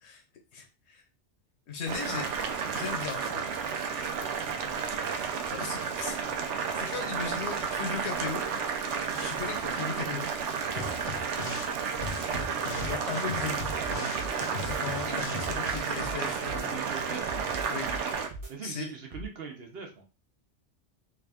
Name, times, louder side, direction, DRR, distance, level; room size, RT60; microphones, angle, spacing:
voice 1, 0.5-1.0 1.7-2.4 2.7-3.5 5.5-8.4 9.1-10.3 12.8-13.7 14.7-16.9 17.7-17.9 18.6-18.9, left 5 dB, 75° left, 4 dB, 1.0 m, -37 dB
Boiling, 1.9-18.3, right 6 dB, 85° right, 0.9 m, -32 dB
voice 2, 10.6-11.0 16.7-17.4 18.5-20.0, right 5 dB, 60° right, 2 dB, 1.0 m, -41 dB
sound 1, 10.8-11.7 12.0-15.8, left 5 dB, 55° left, 0.6 m, -39 dB
sound 2, 12.0-12.5 12.8-13.0 13.6-14.3 14.6-14.8 15.4-16.2 16.5-16.7 17.3-18.0 18.3-18.5 19.1-19.3, right 1 dB, 35° right, 0.7 m, -40 dB
3.4 x 2.5 x 3.4 m, 0.32 s
omnidirectional pair, 1.2 m